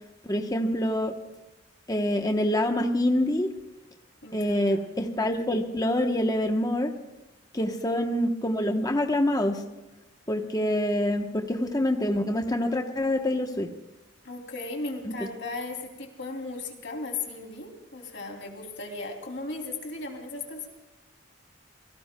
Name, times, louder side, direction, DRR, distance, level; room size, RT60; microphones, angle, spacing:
voice 1, 0.2-1.1 1.9-3.5 4.3-6.9 7.5-9.6 10.3-13.7 15.0-15.1, left 1 dB, 20° left, 4 dB, 0.9 m, -26 dB
voice 2, 4.2-4.8 7.6-8.0 14.2-20.7, left 3 dB, 60° left, 2 dB, 2.9 m, -37 dB
27.0 x 18.0 x 2.2 m, 1.0 s
head